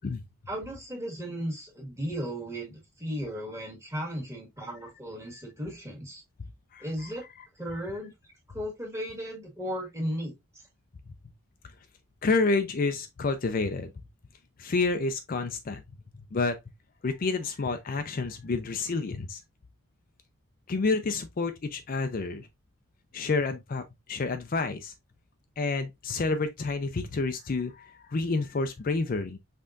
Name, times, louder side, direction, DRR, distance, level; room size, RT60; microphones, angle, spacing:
voice 1, 0.5-6.2 6.8-7.2 7.5-8.1 8.5-10.6, equal, 15° right, 1.6 m, -35 dB
voice 2, 12.2-13.9 14.6-15.8 16.3-16.6 17.0-19.4 20.7-22.5 23.1-24.9 25.6-29.4, left 3 dB, 40° left, 0.4 m, -29 dB
5.6 x 3.7 x 2.5 m
head